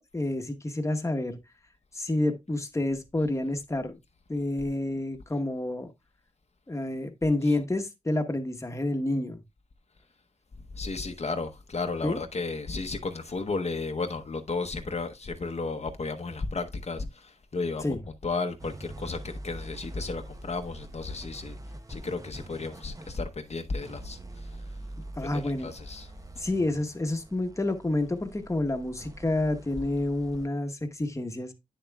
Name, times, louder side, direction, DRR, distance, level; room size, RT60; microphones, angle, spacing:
voice 1, 0.0-1.4 1.9-4.0 4.3-5.9 6.7-9.4 12.0-12.2 17.8-18.0 25.2-25.7 26.4-31.5, left 1 dB, 20° left, 1.0 m, -29 dB
voice 2, 10.7-18.0 18.2-21.6 21.9-24.8 25.3-26.1, left 3 dB, 55° left, 0.8 m, -33 dB
sound 1, 18.6-30.5, right 1 dB, 25° right, 0.7 m, -44 dB
9.4 x 7.1 x 2.3 m
wide cardioid pair, 85°, 13 cm